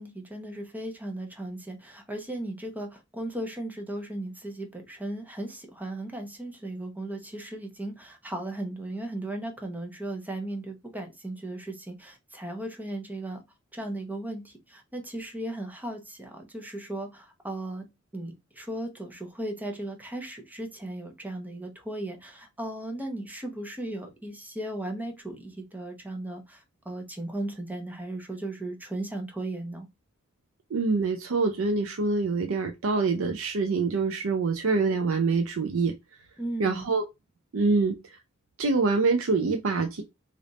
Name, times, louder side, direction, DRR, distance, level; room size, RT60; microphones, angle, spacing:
voice 1, 0.0-13.4 13.7-17.8 18.1-29.9 36.4-36.8, right 1 dB, 10° right, 0.8 m, -36 dB
voice 2, 30.7-35.9 36.6-37.0 37.5-37.9 38.6-40.0, right 4 dB, 80° right, 0.5 m, -25 dB
3.4 x 2.5 x 3.9 m
head